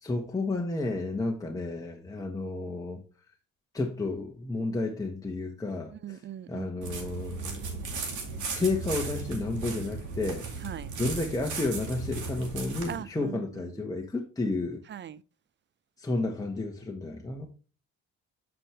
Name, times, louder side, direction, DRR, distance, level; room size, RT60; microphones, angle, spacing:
voice 1, 0.0-3.0 3.7-6.2 6.5-10.4 11.0-14.8 16.0-17.5, left 2 dB, 10° left, 1.4 m, -32 dB
voice 2, 5.9-6.7 10.6-10.9 12.9-13.8 14.9-15.2, right 10 dB, 40° right, 0.4 m, -40 dB
sound 1, 6.8-13.0, right 4 dB, 80° right, 2.1 m, -36 dB
7.6 x 6.0 x 3.2 m
cardioid pair, 90°, 30 cm